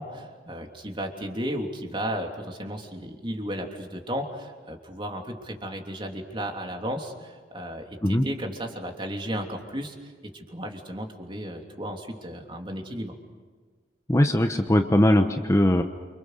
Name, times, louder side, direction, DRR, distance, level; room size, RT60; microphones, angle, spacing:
voice 1, 0.0-9.9 10.3-13.1, equal, 30° right, 2 dB, 3.2 m, -34 dB
voice 2, 14.1-15.8, left 1 dB, 15° left, 5 dB, 1.1 m, -20 dB
28.5 x 26.5 x 6.6 m, 1.5 s
head